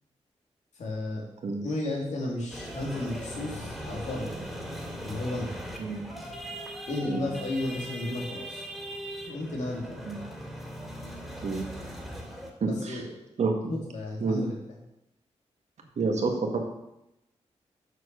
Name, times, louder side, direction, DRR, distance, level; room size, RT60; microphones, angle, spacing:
voice 1, 0.8-1.2 1.6-4.3 5.0-5.5 6.9-8.6 9.2-10.1 12.6-13.1 13.9-14.5, left 2 dB, 80° left, -2 dB, 2.8 m, -33 dB
sound 1, 2.5-12.5, equal, ahead, 2.5 m, -39 dB
voice 2, 12.6-13.0 13.4-13.7 14.2-14.5 16.0-16.6, right 3 dB, 70° right, 2 dB, 1.9 m, -28 dB
7.6 x 6.2 x 6.9 m, 0.87 s
cardioid pair, 80°, 12 cm